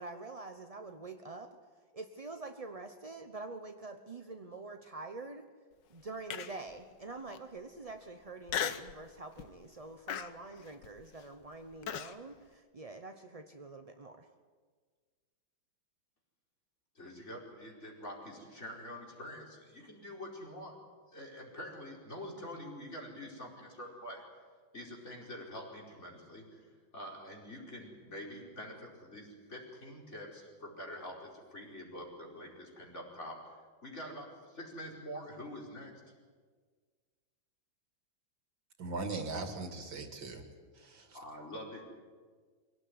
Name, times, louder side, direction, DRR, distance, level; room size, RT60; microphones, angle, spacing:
voice 1, 0.0-1.6 1.9-5.5 5.9-14.3, right 3 dB, 45° right, 6 dB, 0.4 m, -46 dB
Human voice, 6.3-6.7 7.3-7.4 8.5-9.0 9.4-9.7 10.1-12.1, left 8 dB, 65° left, 1.6 m, -37 dB
voice 2, 17.0-20.8 21.1-24.2 24.7-26.7 26.9-33.6 33.8-35.9 41.1-41.8, equal, 35° left, -1 dB, 5.2 m, -46 dB
voice 3, 38.8-40.4 40.7-41.2, right 3 dB, 70° right, 5 dB, 3.0 m, -39 dB
23.5 x 17.5 x 9.6 m, 1.5 s
omnidirectional pair, 2.2 m